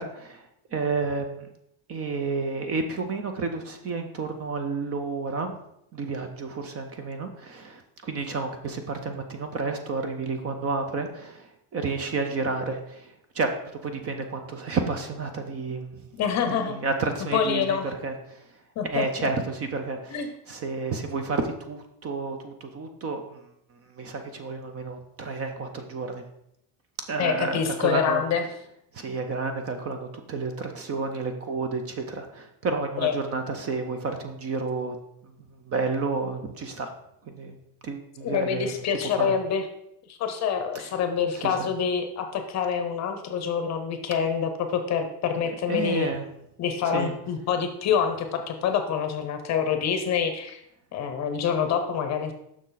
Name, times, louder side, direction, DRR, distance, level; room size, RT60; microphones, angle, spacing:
voice 1, 0.0-1.5 1.9-5.6 5.9-16.0 16.5-18.5 18.9-23.5 23.9-26.2 27.1-28.2 28.9-35.0 35.2-36.9 37.2-37.6 37.8-39.3 40.7-40.9 41.3-41.7 44.1-44.2 45.4-46.2 46.8-47.1, right 4 dB, 30° right, 6 dB, 0.6 m, -31 dB
voice 2, 16.2-16.8 17.3-17.9 18.8-19.3 20.1-20.3 27.2-28.4 33.0-33.1 38.2-39.6 40.2-46.1 46.6-50.6 50.9-52.3, left 7 dB, 35° left, 7 dB, 0.8 m, -26 dB
6.7 x 6.1 x 3.9 m, 0.78 s
cardioid pair, 160°, 47 cm